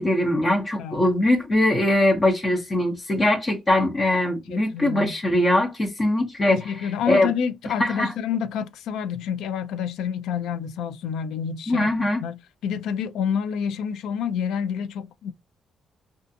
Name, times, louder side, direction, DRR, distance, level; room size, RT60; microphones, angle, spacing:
voice 1, 0.0-7.3 7.8-8.1 11.7-12.2, left 1 dB, 30° left, 0.6 m, -22 dB
voice 2, 0.8-1.1 4.5-5.1 6.5-15.3, left 7 dB, 85° left, 0.3 m, -28 dB
2.4 x 2.4 x 2.5 m
cardioid pair, 90°, 0 cm